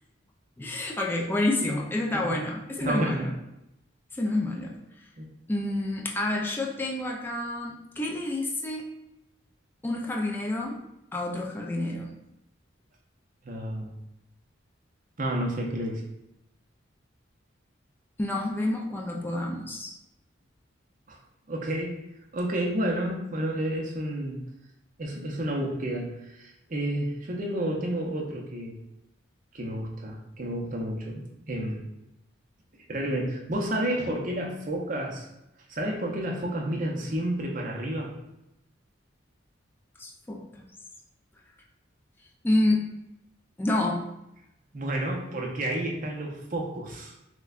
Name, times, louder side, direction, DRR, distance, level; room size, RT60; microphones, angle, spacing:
voice 1, 0.6-3.3 4.1-5.1 5.5-8.9 9.8-10.8 11.1-12.1 18.2-19.9 40.0-40.6 42.4-42.9 43.6-44.0, left 2 dB, 10° left, -1 dB, 0.3 m, -29 dB
voice 2, 2.8-3.3 5.2-5.3 13.4-14.0 15.2-16.0 21.1-21.2 21.5-22.0 22.3-24.4 25.0-28.8 29.5-31.8 32.9-35.3 35.7-38.1 44.7-47.1, right 1 dB, 45° right, 0 dB, 0.7 m, -30 dB
6.0 x 2.2 x 2.4 m, 0.87 s
head